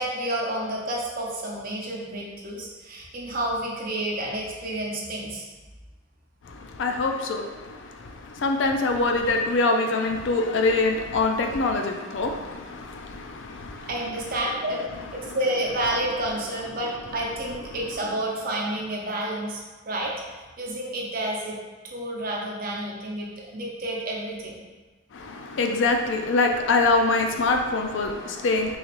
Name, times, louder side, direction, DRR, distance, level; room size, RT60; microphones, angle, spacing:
voice 1, 0.0-5.4 13.9-14.8 15.1-20.1 20.6-21.6 21.8-24.6, right 1 dB, 50° right, -2 dB, 0.7 m, -30 dB
voice 2, 6.4-13.9 14.9-15.4 25.1-28.8, left 3 dB, 65° left, 3 dB, 0.4 m, -25 dB
3.9 x 2.9 x 2.9 m, 1.2 s
head